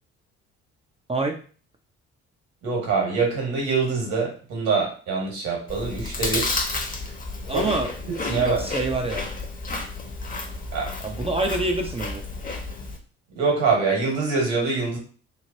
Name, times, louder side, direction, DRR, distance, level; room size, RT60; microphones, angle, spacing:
voice 1, 2.6-6.6 7.5-7.6 8.3-8.6 10.7-10.9 13.4-15.0, right 4 dB, 65° right, -1 dB, 1.6 m, -24 dB
Chewing mastication, 5.7-13.0, left 3 dB, 25° left, 0.8 m, -31 dB
voice 2, 7.5-7.9 8.3-9.3 11.0-12.2, right 2 dB, 15° right, 2 dB, 0.5 m, -26 dB
3.2 x 2.5 x 2.7 m, 0.39 s
hypercardioid pair, 50°, 35 cm